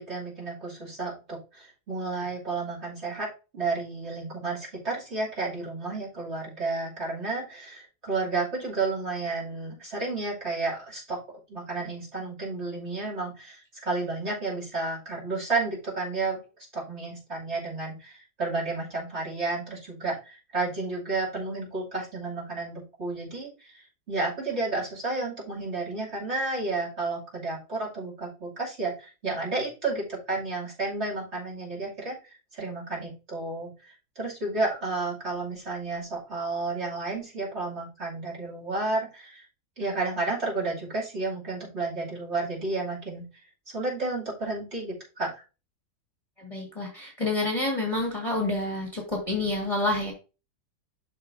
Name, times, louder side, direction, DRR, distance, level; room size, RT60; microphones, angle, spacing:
voice 1, 0.0-3.3 3.5-11.2 11.5-16.4 16.7-23.7 24.1-32.2 32.5-33.7 34.2-39.4 39.8-43.3 43.7-45.3, right 3 dB, 40° right, -5 dB, 3.1 m, -31 dB
voice 2, 46.4-50.1, left 2 dB, 20° left, -1 dB, 1.8 m, -28 dB
11.5 x 4.5 x 2.7 m, 0.31 s
omnidirectional pair, 1.8 m